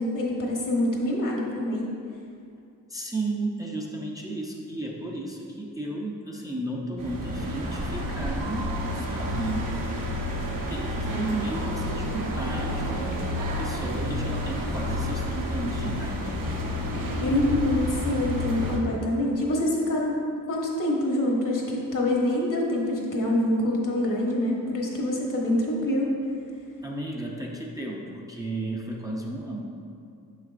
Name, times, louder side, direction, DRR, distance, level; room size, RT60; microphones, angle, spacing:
voice 1, 0.0-1.8 17.2-20.2 20.5-26.1, left 1 dB, 60° left, -2 dB, 1.2 m, -25 dB
voice 2, 2.9-9.7 10.7-13.3 13.6-16.4 26.8-29.7, right 2 dB, 10° right, -2 dB, 0.5 m, -33 dB
sound 1, 7.0-18.8, left 1 dB, 65° right, 0.9 m, -30 dB
6.3 x 6.3 x 2.5 m, 2.5 s
wide cardioid pair, 105°, 35 cm